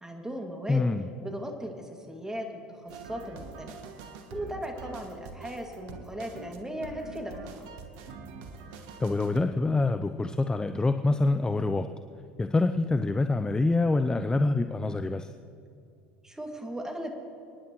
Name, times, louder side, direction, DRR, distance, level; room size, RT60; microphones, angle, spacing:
voice 1, 0.0-0.9 1.2-3.7 4.3-7.7 16.2-17.1, equal, 10° right, 2 dB, 2.4 m, -37 dB
voice 2, 0.7-1.1 9.0-11.9 12.4-15.3, left 3 dB, 15° left, 9 dB, 0.5 m, -26 dB
sound 1, 2.9-9.4, right 4 dB, 65° right, 1.3 m, -45 dB
29.5 x 10.0 x 3.2 m, 2.5 s
hypercardioid pair, 75°, 6 cm